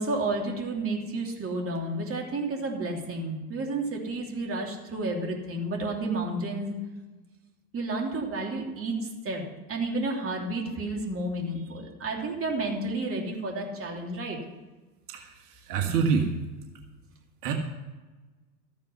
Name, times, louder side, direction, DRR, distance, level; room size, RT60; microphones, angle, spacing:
voice 1, 0.0-6.8 7.7-9.4 9.7-14.4, right 2 dB, 25° right, 1 dB, 3.1 m, -31 dB
voice 2, 15.7-16.3 17.4-17.5, right 6 dB, 75° right, 3 dB, 1.7 m, -25 dB
14.0 x 9.1 x 5.6 m, 1.2 s
hypercardioid pair, 100°, 48 cm